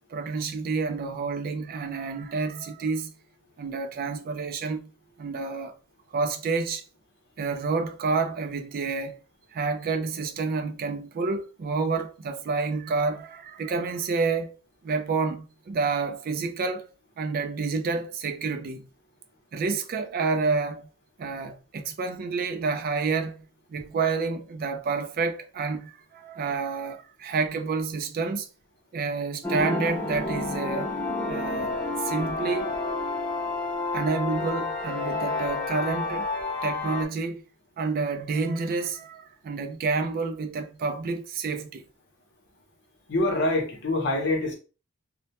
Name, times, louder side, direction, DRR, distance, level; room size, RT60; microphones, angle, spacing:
voice 1, 0.1-3.1 3.6-4.9 5.2-5.7 6.1-6.8 7.4-9.2 9.5-16.9 17.2-18.9 19.5-20.9 21.2-23.4 23.7-28.5 28.9-30.9 31.3-31.7 32.0-32.8 33.9-36.3 36.6-37.4 37.8-41.8, right 4 dB, 40° right, 0.3 m, -29 dB
sound 1, 29.4-37.0, left 3 dB, 5° left, 0.5 m, -30 dB
voice 2, 43.1-44.5, left 2 dB, 55° left, 0.7 m, -25 dB
2.1 x 2.1 x 2.8 m
head